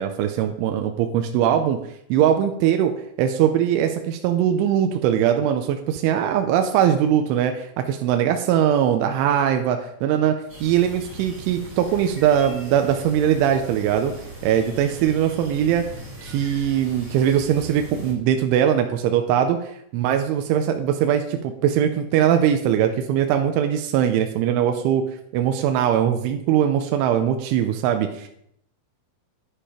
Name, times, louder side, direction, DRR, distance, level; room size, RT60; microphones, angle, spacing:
voice 1, 0.0-1.8 2.1-2.9 3.2-10.3 10.6-14.1 14.4-15.8 16.2-25.0 25.3-28.3, right 9 dB, 85° right, 5 dB, 3.2 m, -21 dB
sound 1, 10.5-18.1, right 1 dB, 20° right, 3.1 m, -39 dB
10.0 x 8.7 x 4.9 m, 0.73 s
omnidirectional pair, 5.4 m